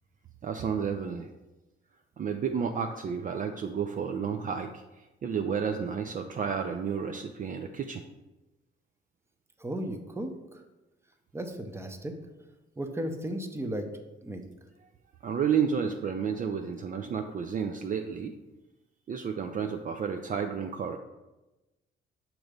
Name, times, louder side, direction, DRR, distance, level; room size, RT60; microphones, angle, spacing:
voice 1, 0.4-1.3 2.2-8.0 15.2-18.3 19.1-21.0, right 7 dB, 45° right, 5 dB, 0.4 m, -31 dB
voice 2, 9.6-10.6 11.3-12.1 12.8-13.9 14.2-14.4, right 1 dB, 15° right, 6 dB, 0.7 m, -35 dB
6.4 x 3.0 x 5.1 m, 1.1 s
cardioid pair, 90°, 20 cm